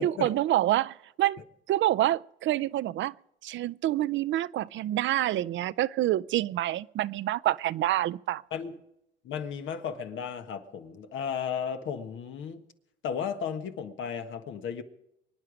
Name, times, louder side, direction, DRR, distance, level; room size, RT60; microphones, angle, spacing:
voice 1, 0.0-1.4 1.7-3.1 3.4-8.4, right 14 dB, 70° right, 0.5 m, -27 dB
voice 2, 8.5-8.8 9.2-12.6 13.0-14.8, left 7 dB, 80° left, 1.4 m, -34 dB
24.0 x 9.8 x 5.0 m
cardioid pair, 90°, 20 cm